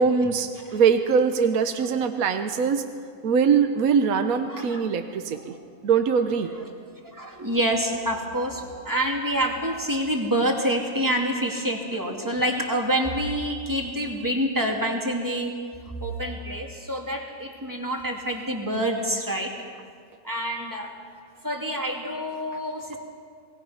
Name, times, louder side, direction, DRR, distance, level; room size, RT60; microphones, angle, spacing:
voice 1, 0.0-2.8 3.2-5.5 5.8-6.5, right 6 dB, 65° right, 7 dB, 1.3 m, -22 dB
voice 2, 4.5-4.8 6.5-6.6 7.0-15.5 16.0-19.5 20.2-20.9 21.4-23.0, equal, 10° right, 0 dB, 2.5 m, -27 dB
26.5 x 19.0 x 5.8 m, 2.2 s
omnidirectional pair, 1.7 m